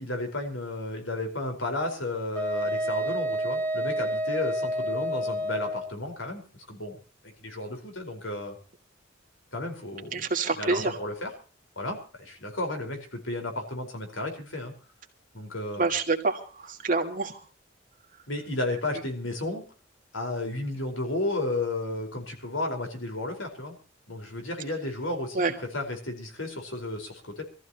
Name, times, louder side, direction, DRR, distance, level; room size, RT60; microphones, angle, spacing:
voice 1, 0.0-6.4 6.7-6.9 7.4-8.6 9.5-10.3 10.6-11.3 11.8-14.7 15.3-15.9 18.3-19.6 20.1-23.8 24.1-25.4 25.7-27.4, left 2 dB, 80° left, 4 dB, 4.8 m, -33 dB
Wind instrument woodwind instrument, 2.3-5.9, equal, 10° left, 2.0 m, -29 dB
voice 2, 10.1-11.0 15.8-17.4 25.3-25.5, right 3 dB, 40° right, 3 dB, 2.3 m, -27 dB
25.0 x 14.5 x 3.0 m, 0.37 s
head